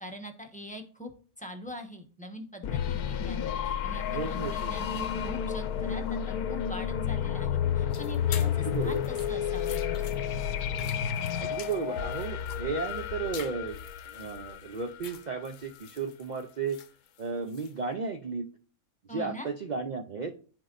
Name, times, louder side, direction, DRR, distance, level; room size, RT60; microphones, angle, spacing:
voice 1, 0.0-1.1 1.4-10.1 19.1-19.5, left 1 dB, 5° left, 3 dB, 0.9 m, -43 dB
sound 1, 2.6-15.3, left 9 dB, 85° left, 1.2 m, -31 dB
voice 2, 4.1-4.7 8.4-9.0 11.4-13.8 14.0-16.8 17.2-18.5 19.1-20.3, right 5 dB, 75° right, 5 dB, 0.4 m, -34 dB
sound 2, 7.9-17.8, left 9 dB, 65° left, 1.0 m, -47 dB
13.5 x 4.5 x 2.5 m, 0.40 s
omnidirectional pair, 1.6 m